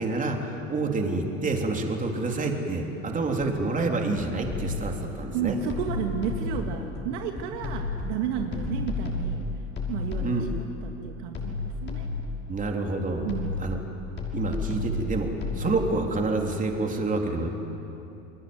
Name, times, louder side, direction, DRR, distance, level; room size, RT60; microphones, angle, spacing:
voice 1, 0.0-5.6 10.2-10.5 12.5-13.3 13.6-13.8 14.3-17.5, right 3 dB, 20° right, 2 dB, 3.6 m, -28 dB
sound 1, 3.4-3.9 4.2-4.9 5.2-6.0 6.3-8.8, equal, ahead, 5.1 m, -39 dB
sound 2, 4.5-5.0 5.7-6.7 7.6-8.2 8.5-10.6 11.3-12.4 13.3-13.8 14.2-15.7, left 3 dB, 30° left, 6.1 m, -32 dB
voice 2, 5.3-9.4 9.9-12.1 13.2-13.6, right 7 dB, 60° right, 3 dB, 2.1 m, -32 dB
29.5 x 22.0 x 8.0 m, 2.9 s
hypercardioid pair, 90°, 40 cm